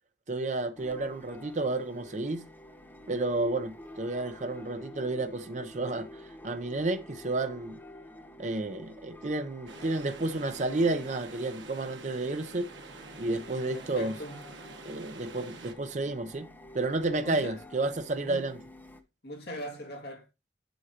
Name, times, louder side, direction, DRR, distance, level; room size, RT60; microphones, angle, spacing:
voice 1, 0.3-2.4 3.1-6.1 6.4-7.8 8.4-12.7 13.2-14.1 14.8-16.5 16.7-18.6, right 2 dB, 40° right, 0.7 m, -31 dB
sound 1, 0.8-19.0, left 1 dB, 10° left, 0.7 m, -50 dB
sound 2, 9.7-15.7, right 3 dB, 85° right, 1.2 m, -48 dB
voice 2, 13.7-14.4 17.2-17.6 18.1-18.5 19.2-20.3, right 1 dB, 60° left, 2.1 m, -40 dB
8.0 x 6.3 x 2.8 m
head